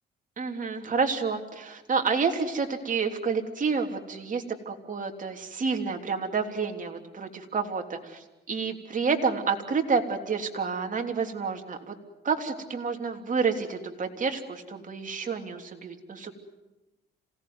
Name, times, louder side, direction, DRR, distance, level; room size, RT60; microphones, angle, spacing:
voice 1, 0.4-11.9 12.2-16.3, right 5 dB, 40° right, 4 dB, 3.3 m, -29 dB
27.0 x 18.0 x 9.6 m, 1.0 s
cardioid pair, 90°, 20 cm